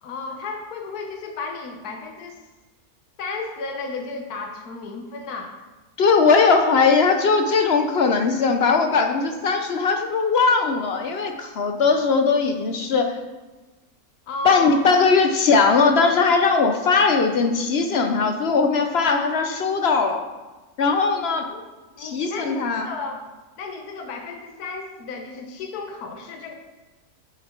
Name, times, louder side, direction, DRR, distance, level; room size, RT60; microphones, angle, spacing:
voice 1, 0.0-2.4 3.2-5.5 14.3-15.0 21.5-21.6 22.0-23.2 23.6-26.5, left 3 dB, 85° left, 4 dB, 1.4 m, -33 dB
voice 2, 6.0-13.1 14.4-20.2 20.8-21.5 22.0-22.9, left 4 dB, 55° left, 6 dB, 0.7 m, -19 dB
8.1 x 7.5 x 4.4 m, 1.2 s
omnidirectional pair, 1.6 m